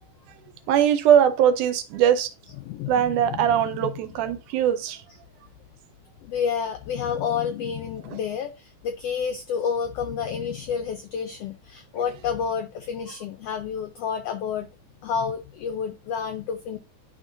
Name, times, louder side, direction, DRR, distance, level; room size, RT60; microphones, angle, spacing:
voice 1, 0.7-2.3 2.9-5.0 8.1-8.2, right 9 dB, 85° right, 2.3 m, -21 dB
voice 2, 2.6-3.9 6.2-14.7 15.0-16.8, left 7 dB, 85° left, 1.3 m, -30 dB
11.0 x 3.8 x 2.6 m
omnidirectional pair, 3.5 m